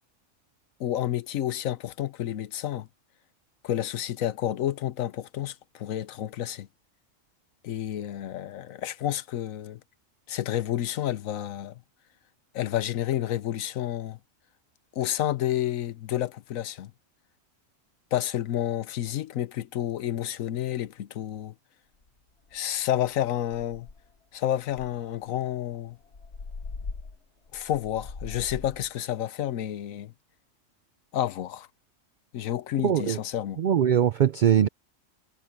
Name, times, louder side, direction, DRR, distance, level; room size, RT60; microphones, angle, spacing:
voice 1, 0.8-2.9 3.6-6.7 7.6-9.8 10.3-11.8 12.5-14.2 14.9-16.9 18.1-21.5 22.5-23.9 24.3-26.0 27.5-30.1 31.1-31.7 32.3-33.6, left 12 dB, 85° left, 1.2 m, -30 dB
sound 1, 22.0-22.1 22.5-22.8 23.1-23.2 23.5-24.2 24.7-28.9, left 4 dB, 55° left, 1.7 m, -41 dB
voice 2, 32.8-33.2 33.6-34.7, right 9 dB, 85° right, 0.4 m, -21 dB
omnidirectional pair, 1.4 m